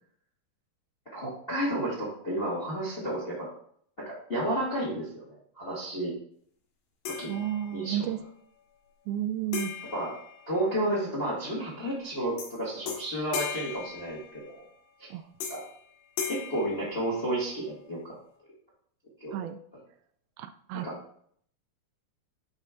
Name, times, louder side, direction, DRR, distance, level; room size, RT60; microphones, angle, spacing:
voice 1, 1.1-3.5 4.0-6.1 7.0-7.3 7.7-8.1 9.9-10.1 10.5-14.6 15.0-15.1 15.5-15.6 16.3-18.1 19.2-19.3 20.8-20.9, right 1 dB, 30° left, -4 dB, 1.0 m, -32 dB
sound 1, 7.1-8.0 9.5-11.1 12.4-12.6 12.9-14.7 15.4-15.8 16.2-17.6, left 6 dB, 85° left, 3.4 m, -38 dB
voice 2, 7.3-8.2 9.1-9.7 15.1-15.2 19.3-19.6 20.4-20.9, right 11 dB, 80° right, 9 dB, 2.3 m, -32 dB
10.5 x 4.4 x 3.6 m, 0.63 s
omnidirectional pair, 4.5 m